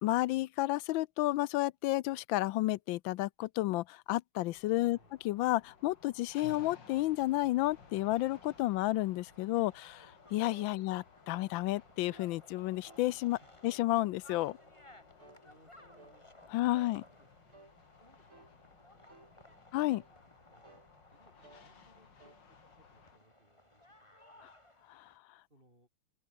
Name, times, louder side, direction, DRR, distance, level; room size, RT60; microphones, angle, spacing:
voice 1, 0.0-5.0 5.2-14.6 16.5-17.0 19.7-20.0 24.4-24.5 24.9-25.1, left 17 dB, 75° left, 1.3 m, -31 dB
sound 1, 4.5-23.2, left 5 dB, 60° left, 3.1 m, -59 dB
voice 2, 4.8-5.2 10.7-10.9 13.4-13.6 15.4-16.7 17.0-17.6 18.0-18.5 18.9-19.6 20.3-20.8 21.1-24.5 25.5-25.9, right 1 dB, 25° right, 8.1 m, -67 dB
sound 2, 6.8-25.2, left 1 dB, 15° left, 3.8 m, -61 dB
sound 3, 10.5-10.8 11.3-11.5 12.1-12.3 12.8-13.1 13.6-13.9 14.4-14.7 15.2-15.5 16.0-16.2 16.7-17.0 17.5-17.8 18.3-18.5 19.1-19.4 19.9-20.1 20.6-20.9 21.4-21.7 22.2-22.4, right 2 dB, 80° right, 8.9 m, -58 dB
open air
omnidirectional pair, 2.2 m